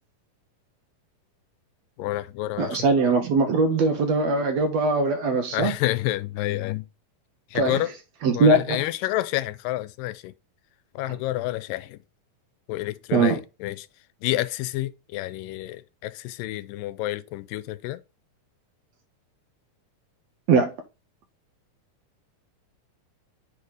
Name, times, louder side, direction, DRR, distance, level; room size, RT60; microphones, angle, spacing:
voice 1, 2.0-2.9 5.5-6.9 7.5-7.9 8.3-10.3 11.0-12.0 12.7-13.9 14.2-18.0, left 16 dB, 85° left, 2.2 m, -29 dB
voice 2, 2.6-5.7 7.5-7.8 8.2-8.8 11.1-11.2 13.1-13.4 20.5-20.7, right 3 dB, 70° right, 1.8 m, -21 dB
8.6 x 3.2 x 5.3 m
omnidirectional pair, 3.9 m